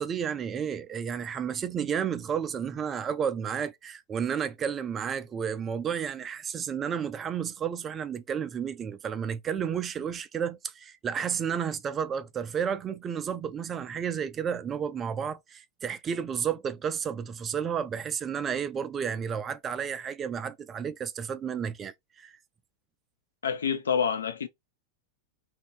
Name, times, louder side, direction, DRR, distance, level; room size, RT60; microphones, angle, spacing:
voice 1, 0.0-22.3, right 7 dB, 25° right, 0.3 m, -32 dB
voice 2, 23.4-24.5, left 7 dB, 70° left, 0.5 m, -27 dB
2.9 x 2.6 x 3.1 m
figure-of-eight pair, 90°, 0 cm